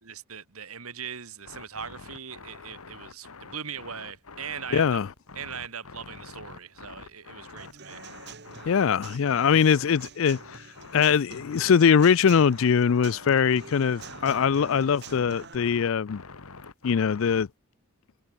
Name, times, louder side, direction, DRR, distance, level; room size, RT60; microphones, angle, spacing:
voice 1, 0.0-5.0 5.3-8.0, right 7 dB, 85° right, 2.9 m, -40 dB
sound 1, 1.4-17.5, left 4 dB, 90° left, 1.9 m, -46 dB
voice 2, 4.7-5.1 8.7-10.4 10.9-16.2 16.8-17.5, left 7 dB, 65° left, 0.4 m, -22 dB
Human voice / Acoustic guitar / Drum, 7.6-15.6, right 5 dB, 50° right, 1.9 m, -46 dB
head